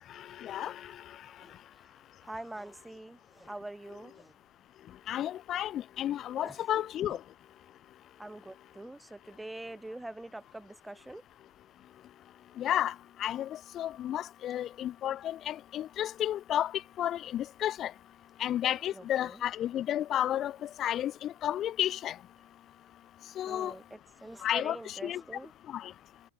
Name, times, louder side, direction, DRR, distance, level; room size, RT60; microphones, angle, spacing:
voice 1, 0.4-0.7 5.1-7.2 12.6-12.9 13.2-13.5 13.7-16.7 17.0-17.9 18.4-22.1 23.4-23.7 24.4-25.2 25.7-25.9, left 11 dB, 30° left, 0.8 m, -32 dB
voice 2, 2.2-4.3 6.4-7.2 8.2-11.2 18.9-19.4 23.5-25.5, right 1 dB, 5° right, 4.4 m, -45 dB
figure-of-eight pair, 90°, 0 cm